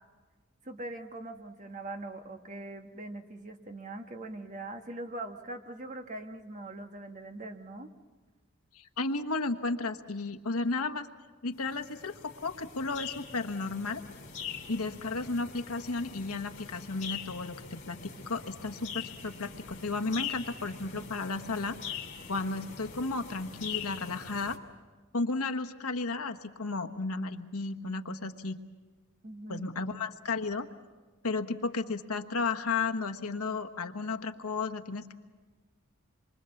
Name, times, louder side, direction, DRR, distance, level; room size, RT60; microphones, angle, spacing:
voice 1, 0.6-7.9 29.2-29.7, right 2 dB, 35° right, 5 dB, 1.4 m, -42 dB
voice 2, 8.7-11.1 11.4-14.0 14.7-21.8 22.3-24.6 25.1-28.6 29.5-30.7 31.2-35.1, left 3 dB, 85° left, 6 dB, 1.3 m, -33 dB
sound 1, 11.6-24.6, left 7 dB, 35° left, 2.8 m, -43 dB
27.5 x 24.0 x 7.1 m, 1.3 s
head